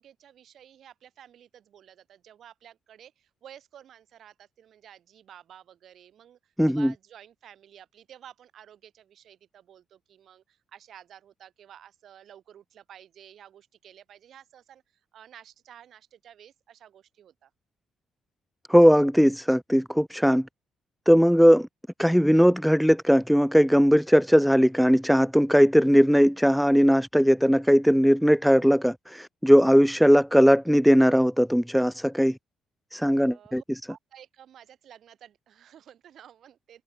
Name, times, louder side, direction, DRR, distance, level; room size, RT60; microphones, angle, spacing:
voice 1, 0.0-14.8 15.1-17.5 33.2-36.8, right 10 dB, 65° right, 6.9 m, -52 dB
voice 2, 6.6-6.9 18.7-20.5 21.1-21.7 22.0-32.4 32.9-33.6, equal, ahead, 0.5 m, -19 dB
cardioid pair, 90°, 0 cm